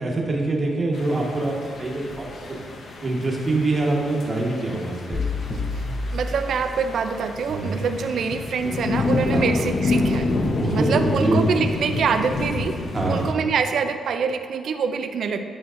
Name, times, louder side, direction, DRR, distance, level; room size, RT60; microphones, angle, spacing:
voice 1, 0.0-2.6 3.0-5.2 7.5-7.8 9.3-9.5 10.6-11.4 12.9-13.3, right 2 dB, 35° right, -1 dB, 1.1 m, -24 dB
sound 1, 0.9-13.3, left 3 dB, 55° left, 0.6 m, -28 dB
sound 2, 5.1-7.2, left 3 dB, 35° left, 0.9 m, -29 dB
voice 2, 6.1-10.3 10.7-12.8 13.1-15.4, right 6 dB, 70° right, 8 dB, 0.3 m, -25 dB
9.1 x 4.5 x 2.5 m, 2.3 s
cardioid pair, 95°, 0 cm